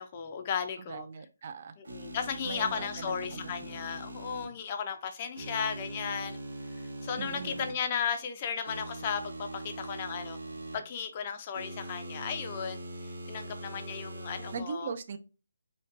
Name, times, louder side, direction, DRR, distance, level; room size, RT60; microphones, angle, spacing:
voice 1, 0.0-1.1 1.8-6.4 7.0-10.4 10.7-12.8 13.3-14.9, left 7 dB, 25° left, 0.4 m, -35 dB
voice 2, 0.8-1.7 2.4-3.5 7.2-7.7 14.5-15.2, right 5 dB, 35° right, 0.4 m, -40 dB
sound 1, 1.8-4.5 5.3-7.7 8.6-10.7 11.5-14.6, right 1 dB, 75° right, 1.3 m, -42 dB
5.1 x 2.2 x 2.5 m
hypercardioid pair, 170°, 0 cm